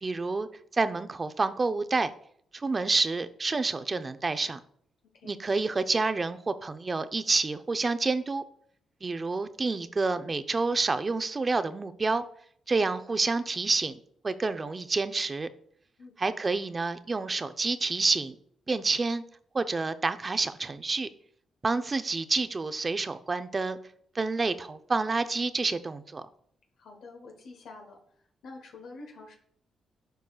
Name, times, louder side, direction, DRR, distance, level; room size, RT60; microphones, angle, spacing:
voice 1, 0.0-2.1 2.5-4.6 5.2-8.4 9.0-12.2 12.7-14.0 14.2-15.5 16.2-18.4 18.7-19.2 19.5-21.1 21.6-23.8 24.1-26.2, right 3 dB, 35° right, 11 dB, 0.6 m, -28 dB
voice 2, 26.8-28.0 28.4-29.3, left 3 dB, 75° left, 2 dB, 1.2 m, -47 dB
11.5 x 4.6 x 2.4 m, 0.64 s
supercardioid pair, 50°, 0 cm